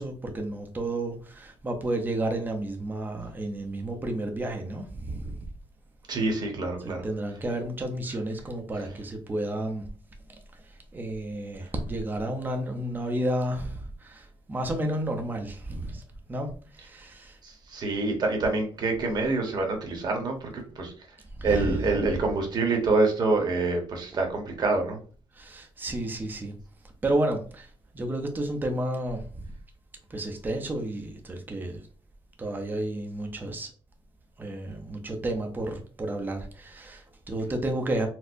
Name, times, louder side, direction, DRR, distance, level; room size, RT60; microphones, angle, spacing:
voice 1, 0.0-5.4 6.8-9.9 10.7-16.0 16.3-17.4 21.4-21.9 25.3-26.6 27.0-29.5 30.1-31.9 32.4-33.7 34.4-38.1, right 1 dB, 20° right, 0.5 m, -31 dB
voice 2, 6.1-7.1 17.4-20.9 21.4-25.0, right 3 dB, 40° right, 0.9 m, -26 dB
4.3 x 2.0 x 2.5 m
cardioid pair, 145°, 10 cm